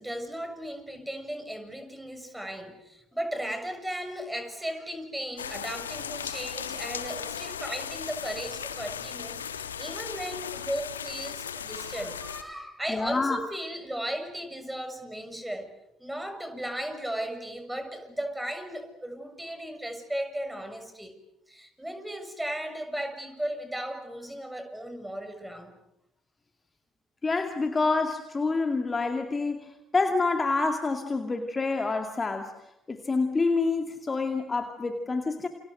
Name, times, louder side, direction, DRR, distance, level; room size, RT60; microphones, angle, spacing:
voice 1, 0.0-15.7 16.0-21.1 21.5-25.8, right 1 dB, 5° right, 7 dB, 6.7 m, -36 dB
sound 1, 5.4-12.4, left 8 dB, 80° left, 1.2 m, -37 dB
voice 2, 12.9-13.4 27.2-32.5 32.9-35.5, left 3 dB, 25° left, 5 dB, 2.4 m, -27 dB
29.5 x 28.0 x 6.6 m, 0.84 s
figure-of-eight pair, 50°, 0 cm